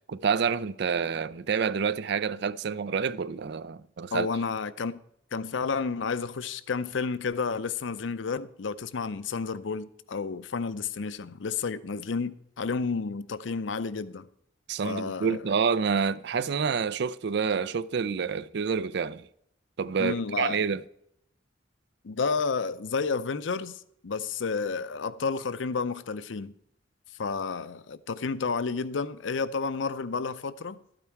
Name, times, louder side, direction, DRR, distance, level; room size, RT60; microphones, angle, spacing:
voice 1, 0.1-4.3 14.7-19.3 19.8-20.8, right 6 dB, 60° right, 0.4 m, -28 dB
voice 2, 4.1-5.0 5.3-14.3 14.8-15.4 20.0-20.6 22.0-26.5 27.2-30.8, left 5 dB, 85° left, 0.6 m, -31 dB
12.5 x 8.9 x 4.6 m
head